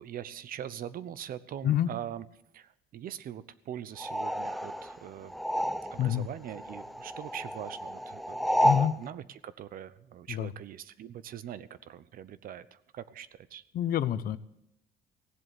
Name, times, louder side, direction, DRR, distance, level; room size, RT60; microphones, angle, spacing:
voice 1, 0.0-2.3 2.5-5.4 5.8-13.6, right 10 dB, 60° right, 16 dB, 0.8 m, -42 dB
sound 1, 4.0-6.2 6.5-9.0, equal, ahead, 0.6 m, -30 dB
voice 2, 13.7-14.4, left 10 dB, 60° left, 14 dB, 0.8 m, -27 dB
17.0 x 7.8 x 8.3 m, 0.82 s
cardioid pair, 110°, 17 cm